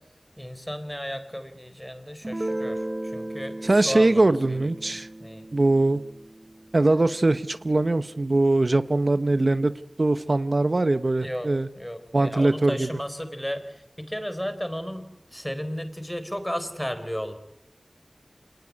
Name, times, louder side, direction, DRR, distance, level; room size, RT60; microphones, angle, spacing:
voice 1, 0.4-4.2 4.5-5.5 11.2-17.4, equal, 10° left, 9 dB, 4.2 m, -34 dB
Guitar, 2.2-7.7, right 1 dB, 35° right, 1.2 m, -36 dB
voice 2, 3.6-5.1 5.5-6.0 6.7-9.7 10.0-11.7 12.1-12.9, right 2 dB, 60° right, 12 dB, 0.9 m, -21 dB
28.0 x 18.5 x 9.7 m, 0.86 s
wide cardioid pair, 60°, 0 cm